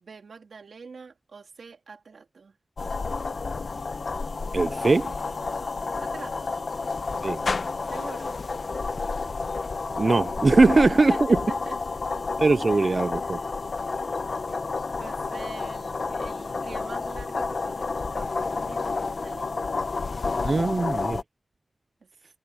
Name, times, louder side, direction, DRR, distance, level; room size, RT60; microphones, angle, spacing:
voice 1, 0.0-2.5 6.0-6.6 7.9-8.4 11.1-11.8 12.7-13.6 15.0-19.7, right 5 dB, 90° right, 3.1 m, -45 dB
sound 1, 2.8-21.2, left 4 dB, 65° left, 1.0 m, -30 dB
voice 2, 4.5-5.1 7.2-7.4 10.0-11.4 12.4-13.4 20.4-21.2, right 3 dB, 50° right, 0.4 m, -21 dB
wide cardioid pair, 75°, 0 cm